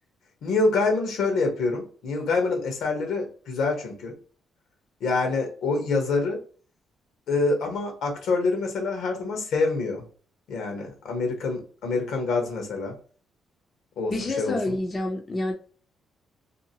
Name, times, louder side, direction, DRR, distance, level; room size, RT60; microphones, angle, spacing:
voice 1, 0.4-4.1 5.0-6.4 7.3-10.0 10.5-12.9 14.0-14.7, left 3 dB, 75° left, 1.0 m, -26 dB
voice 2, 14.1-15.5, left 2 dB, 30° left, 0.6 m, -28 dB
2.7 x 2.2 x 2.7 m
cardioid pair, 90°, 0 cm